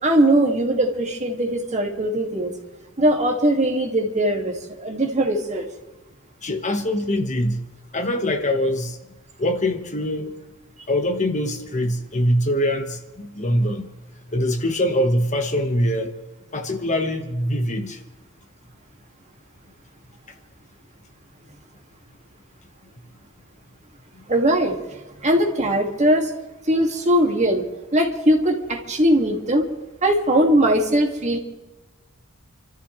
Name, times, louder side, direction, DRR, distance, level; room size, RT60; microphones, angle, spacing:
voice 1, 0.0-2.5 3.0-4.5 4.8-5.6 10.8-10.9 24.3-24.8 25.2-26.3 26.7-27.6 27.9-29.7 30.0-31.4, right 1 dB, 35° right, 2 dB, 2.1 m, -20 dB
voice 2, 6.4-7.6 7.9-9.0 9.4-10.3 10.9-13.9 14.3-16.1 16.5-18.0, left 1 dB, 35° left, 6 dB, 1.3 m, -23 dB
28.5 x 14.0 x 3.2 m, 1.1 s
head